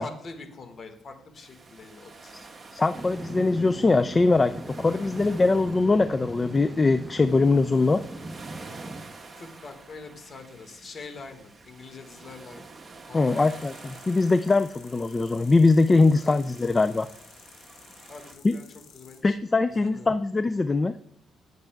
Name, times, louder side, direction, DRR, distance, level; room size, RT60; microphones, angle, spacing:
voice 1, 0.0-2.4 4.9-5.1 9.3-12.6 13.1-13.6 16.2-16.4 18.1-19.4 19.7-20.1, left 3 dB, 45° left, 6 dB, 1.7 m, -44 dB
sound 1, 1.4-18.4, right 3 dB, 35° right, 1.2 m, -49 dB
voice 2, 2.7-8.0 13.1-17.1 18.4-18.6 19.2-21.0, left 3 dB, 25° left, 11 dB, 0.3 m, -22 dB
sound 2, 2.9-9.0, right 2 dB, 15° right, 0.8 m, -39 dB
sound 3, 13.3-19.2, left 7 dB, 85° left, 1.8 m, -53 dB
15.5 x 6.6 x 2.3 m, 0.76 s
cardioid pair, 90°, 0 cm